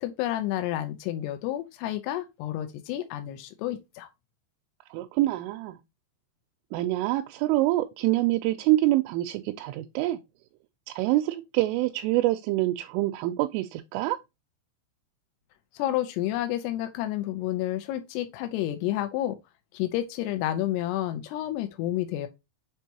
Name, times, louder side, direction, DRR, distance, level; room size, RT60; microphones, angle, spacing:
voice 1, 0.0-4.1 15.7-19.4 19.7-22.3, left 13 dB, 90° left, 2.4 m, -30 dB
voice 2, 4.9-5.8 6.7-10.2 10.9-14.2, right 16 dB, 85° right, 3.0 m, -26 dB
7.3 x 4.5 x 2.8 m
omnidirectional pair, 5.8 m